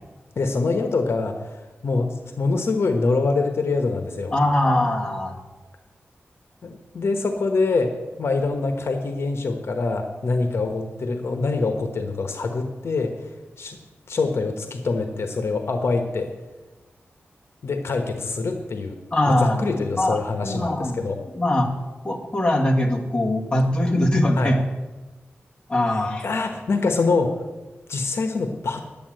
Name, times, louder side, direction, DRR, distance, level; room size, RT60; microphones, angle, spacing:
voice 1, 0.4-1.4 1.8-4.3 6.6-7.9 8.2-13.1 13.6-13.8 14.1-16.3 17.6-19.0 19.3-21.2 24.4-24.5 26.2-27.4 27.9-28.8, left 3 dB, 70° left, 6 dB, 1.2 m, -24 dB
voice 2, 4.3-5.4 19.1-19.6 19.9-21.7 22.0-24.6 25.7-26.3, left 1 dB, 20° left, -1 dB, 2.0 m, -22 dB
11.0 x 8.8 x 7.6 m, 1.2 s
wide cardioid pair, 120°, 4 cm